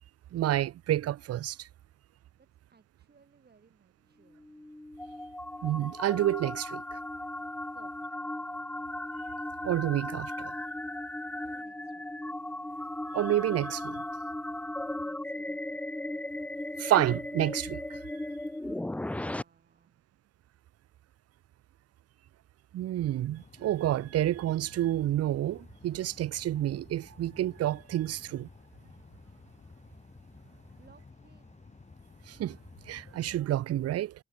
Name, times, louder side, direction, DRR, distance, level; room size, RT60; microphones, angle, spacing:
voice 1, 0.3-1.7 5.6-6.8 9.6-10.5 13.1-14.0 16.8-18.0 22.7-28.5 32.3-32.6 32.9-34.1, right 13 dB, 55° right, 0.6 m, -29 dB
voice 2, 2.4-4.5 7.7-8.4 11.3-12.3 14.7-15.8 18.9-20.0 30.7-31.7, right 5 dB, 35° right, 5.1 m, -63 dB
sound 1, 4.3-19.4, left 1 dB, 5° left, 0.4 m, -37 dB
sound 2, 23.4-33.4, left 3 dB, 20° left, 2.6 m, -53 dB
cardioid pair, 90°, 30 cm